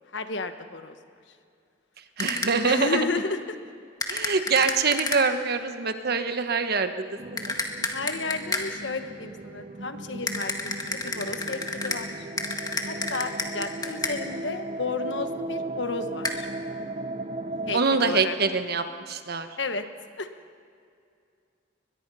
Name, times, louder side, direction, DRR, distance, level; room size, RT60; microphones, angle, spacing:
voice 1, 0.1-1.0 2.6-3.6 7.9-12.3 12.8-16.5 17.7-18.4 19.6-19.8 20.2-20.3, left 3 dB, 70° left, 8 dB, 1.3 m, -32 dB
sound 1, 2.2-2.7 4.0-5.5 7.4-8.9 10.3-14.4 16.2-16.3, left 3 dB, 20° left, 1.7 m, -31 dB
voice 2, 2.2-3.1 4.1-7.1 7.3-7.5 17.7-19.5, right 4 dB, 60° right, 8 dB, 1.3 m, -25 dB
sound 2, 7.2-17.8, right 2 dB, 35° right, 0.8 m, -37 dB
22.5 x 21.0 x 5.6 m, 2.4 s
head